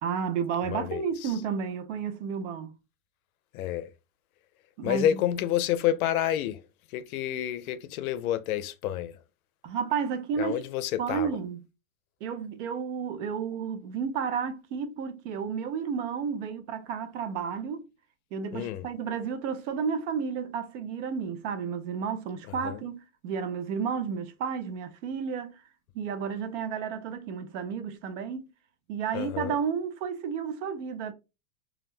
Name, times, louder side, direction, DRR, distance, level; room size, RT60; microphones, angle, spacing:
voice 1, 0.0-2.7 4.8-5.2 9.6-10.6 11.0-11.6 12.2-17.8 18.3-25.6 25.9-28.5 28.9-31.1, right 6 dB, 55° right, 0.6 m, -32 dB
voice 2, 0.6-1.3 3.5-3.9 4.8-6.6 6.9-9.2 10.4-11.4 18.5-18.9 22.6-22.8 29.1-29.6, left 11 dB, 75° left, 0.5 m, -29 dB
2.4 x 2.1 x 3.1 m
supercardioid pair, 145°, 43 cm